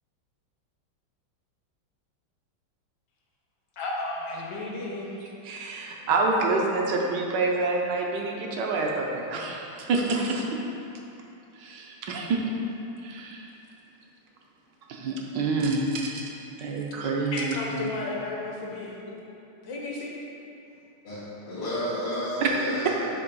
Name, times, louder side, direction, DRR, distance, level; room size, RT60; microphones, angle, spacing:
voice 1, 3.8-5.2 17.3-19.2 19.6-20.2, left 2 dB, 60° left, -3 dB, 1.3 m, -33 dB
voice 2, 5.4-10.4 11.6-12.4 13.0-13.5 14.9-16.3 16.6-17.9 22.4-22.5, right 3 dB, 70° right, 0 dB, 1.2 m, -27 dB
voice 3, 21.0-23.1, equal, 90° left, -14 dB, 2.5 m, -31 dB
6.9 x 3.0 x 5.4 m, 2.8 s
omnidirectional pair, 2.3 m